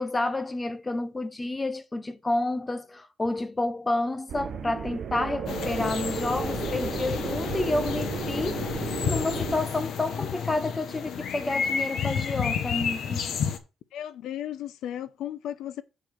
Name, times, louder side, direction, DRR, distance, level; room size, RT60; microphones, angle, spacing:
voice 1, 0.0-8.7 9.1-13.3, left 2 dB, 15° left, 0.9 m, -30 dB
sound 1, 4.3-9.6, right 7 dB, 55° right, 1.1 m, -33 dB
sound 2, 5.5-13.6, left 7 dB, 70° left, 1.3 m, -31 dB
voice 2, 13.9-15.8, left 11 dB, 85° left, 0.8 m, -35 dB
7.8 x 4.6 x 6.6 m
cardioid pair, 140°, 0 cm